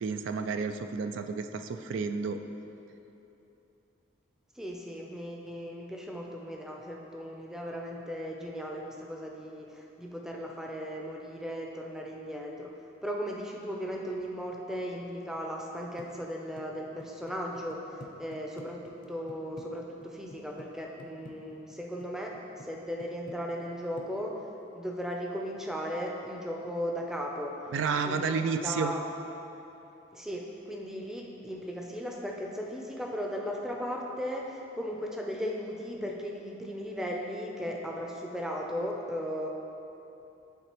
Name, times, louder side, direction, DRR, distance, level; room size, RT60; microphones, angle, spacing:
voice 1, 0.0-2.4 27.7-28.9, right 5 dB, 80° right, 8 dB, 0.3 m, -31 dB
voice 2, 4.6-12.7 13.0-24.4 24.7-27.6 28.0-29.0 30.1-39.5, equal, 5° right, -1 dB, 0.5 m, -37 dB
sound 1, 16.0-19.6 20.0-20.7 21.0-22.1 22.3-22.7 23.0-23.7 24.0-24.1, left 1 dB, 45° left, 0.6 m, -48 dB
11.5 x 3.9 x 3.0 m, 3.0 s
head